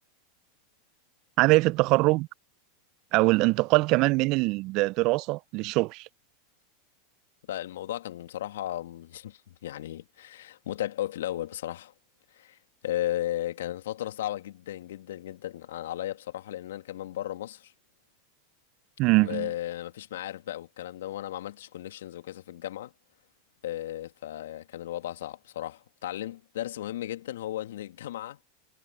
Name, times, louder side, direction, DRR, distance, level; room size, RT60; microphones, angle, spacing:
voice 1, 1.4-2.3 3.1-6.1 19.0-19.5, right 23 dB, 50° right, 0.5 m, -23 dB
voice 2, 7.5-11.9 12.3-12.6 12.8-17.7 19.2-22.9 23.6-28.4, left 13 dB, 75° left, 2.4 m, -35 dB
hypercardioid pair, 95°, 0 cm